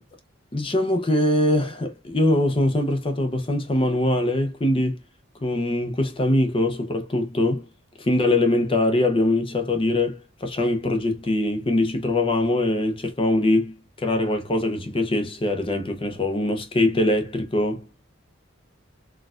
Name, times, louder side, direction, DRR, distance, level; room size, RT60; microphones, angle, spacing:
voice 1, 0.5-5.0 5.4-7.7 8.0-13.7 14.0-17.8, left 1 dB, 25° left, 0.5 m, -22 dB
4.2 x 2.3 x 2.4 m
head